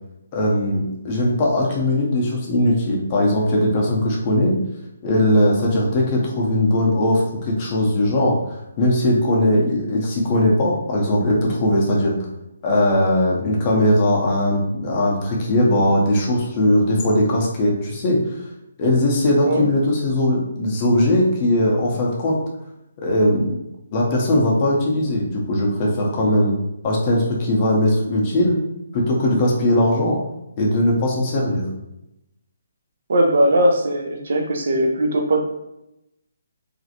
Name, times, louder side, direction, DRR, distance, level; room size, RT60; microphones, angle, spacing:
voice 1, 0.3-4.6 5.0-8.4 8.8-12.2 12.6-18.2 18.8-22.4 23.0-23.6 23.9-26.5 26.8-28.6 28.9-30.2 30.6-31.6, left 1 dB, 30° left, -3 dB, 0.6 m, -19 dB
voice 2, 33.1-35.4, right 1 dB, 65° right, 2 dB, 0.4 m, -19 dB
2.5 x 2.0 x 2.7 m, 0.88 s
hypercardioid pair, 160°, 0 cm